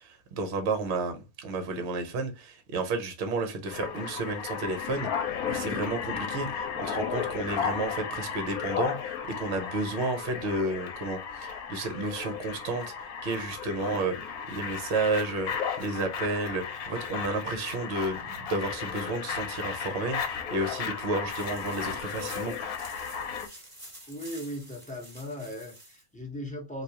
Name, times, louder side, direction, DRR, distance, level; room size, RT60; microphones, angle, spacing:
voice 1, 0.0-22.6, right 3 dB, 55° right, 0.9 m, -32 dB
sound 1, 3.7-23.5, left 7 dB, 80° left, 1.1 m, -34 dB
sound 2, 21.3-26.0, right 1 dB, 20° right, 1.3 m, -49 dB
voice 2, 24.1-26.8, equal, 5° left, 0.8 m, -38 dB
3.5 x 2.6 x 2.8 m
omnidirectional pair, 1.6 m